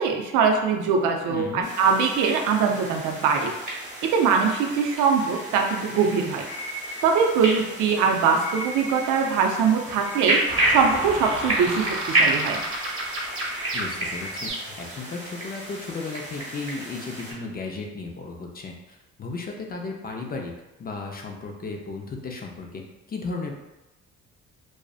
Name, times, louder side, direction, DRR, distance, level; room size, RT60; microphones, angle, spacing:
voice 1, 0.0-3.5 4.1-6.5 7.0-10.4 10.7-12.6, right 6 dB, 90° right, 3 dB, 0.5 m, -22 dB
voice 2, 1.3-1.7 13.7-20.5 20.8-22.8 23.1-23.5, left 3 dB, 30° left, 1 dB, 0.4 m, -35 dB
sound 1, 1.6-17.3, right 1 dB, 25° right, 1.1 m, -31 dB
sound 2, 5.6-14.5, right 1 dB, 60° left, 0.8 m, -40 dB
sound 3, 10.5-14.9, right 1 dB, 45° right, 0.7 m, -32 dB
2.5 x 2.1 x 2.3 m, 0.98 s
cardioid pair, 90°, 30 cm